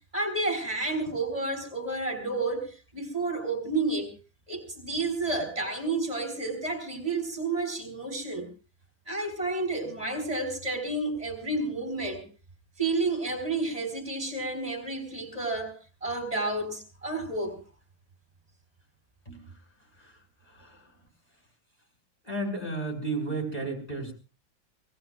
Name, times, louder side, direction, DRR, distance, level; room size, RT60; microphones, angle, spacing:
voice 1, 0.1-4.1 4.5-8.5 9.1-12.2 12.8-17.6, right 2 dB, 20° right, 5 dB, 3.7 m, -30 dB
voice 2, 19.3-19.6 20.0-20.2 20.5-20.9 22.3-24.1, right 2 dB, 20° left, 2 dB, 3.8 m, -33 dB
24.0 x 18.5 x 2.4 m, 0.32 s
omnidirectional pair, 2.0 m